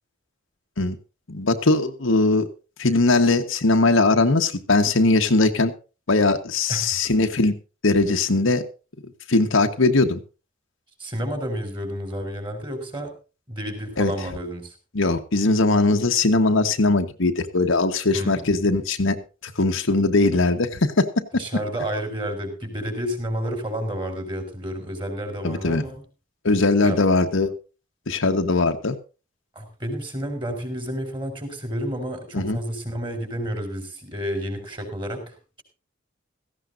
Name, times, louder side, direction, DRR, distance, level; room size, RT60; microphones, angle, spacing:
voice 1, 1.3-2.5 2.8-5.7 6.1-7.5 7.8-8.6 9.3-10.2 14.0-14.1 14.9-21.1 25.4-25.8 26.4-27.5 28.1-28.9 32.3-32.6, left 3 dB, 75° left, 5 dB, 1.3 m, -20 dB
voice 2, 6.7-7.0 11.0-13.1 13.5-14.7 18.1-18.7 21.3-26.0 26.8-27.0 29.5-35.6, equal, 25° right, 6 dB, 4.2 m, -30 dB
17.0 x 15.0 x 2.6 m, 0.32 s
head